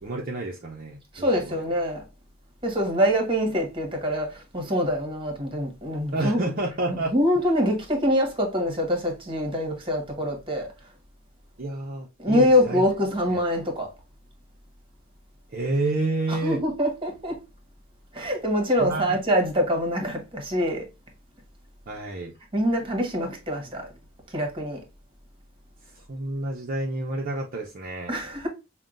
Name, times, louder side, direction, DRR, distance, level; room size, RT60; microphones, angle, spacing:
voice 1, 0.0-1.6 6.1-7.1 11.6-12.8 15.5-16.6 18.8-19.2 21.9-22.3 26.1-28.1, right 2 dB, 40° right, 0.6 m, -29 dB
voice 2, 1.1-2.0 2.6-6.4 6.9-10.7 12.2-13.9 16.3-17.4 18.1-20.9 22.5-23.9 24.3-24.8 28.1-28.5, equal, 25° right, 1.1 m, -25 dB
5.5 x 2.2 x 2.4 m
head